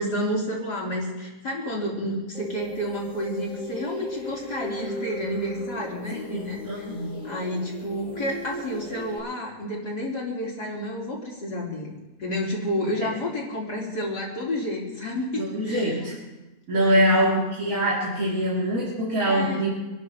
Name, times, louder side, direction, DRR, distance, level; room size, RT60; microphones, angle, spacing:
voice 1, 0.0-6.8 7.2-16.1 16.8-17.4 19.2-19.6, equal, 80° left, -4 dB, 4.2 m, -30 dB
sound 1, 2.3-9.2, left 1 dB, 25° left, 2.6 m, -37 dB
voice 2, 6.1-7.2 15.4-16.2 16.7-19.7, right 1 dB, 55° right, -7 dB, 3.4 m, -24 dB
27.0 x 12.5 x 3.0 m, 1.1 s
omnidirectional pair, 1.7 m